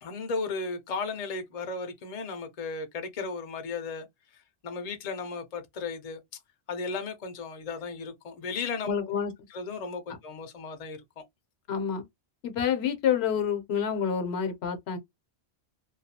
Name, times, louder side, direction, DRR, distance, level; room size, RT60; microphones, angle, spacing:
voice 1, 0.0-4.1 4.3-6.4 6.7-8.9 9.5-11.2, left 4 dB, 45° left, 0.5 m, -35 dB
voice 2, 8.8-9.3 11.7-12.0 12.4-15.0, left 7 dB, 75° left, 0.9 m, -28 dB
2.3 x 2.3 x 2.7 m
omnidirectional pair, 1.1 m